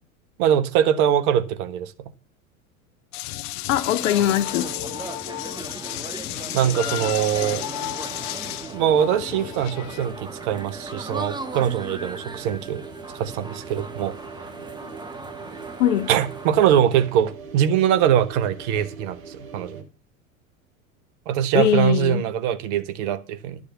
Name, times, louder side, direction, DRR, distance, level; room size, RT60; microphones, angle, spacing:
voice 1, 0.4-1.9 6.5-7.6 8.7-12.8 13.1-14.2 16.1-19.8 21.3-23.6, right 10 dB, 60° right, 1.3 m, -22 dB
sound 1, 3.1-10.1, left 17 dB, 40° left, 0.6 m, -33 dB
voice 2, 3.7-4.7 15.8-16.1 21.5-22.2, left 12 dB, 65° left, 0.9 m, -21 dB
sound 2, 3.9-16.8, right 2 dB, 10° right, 1.6 m, -38 dB
sound 3, 7.3-19.8, right 5 dB, 80° right, 2.3 m, -42 dB
11.5 x 6.9 x 6.9 m
hypercardioid pair, 90°, 41 cm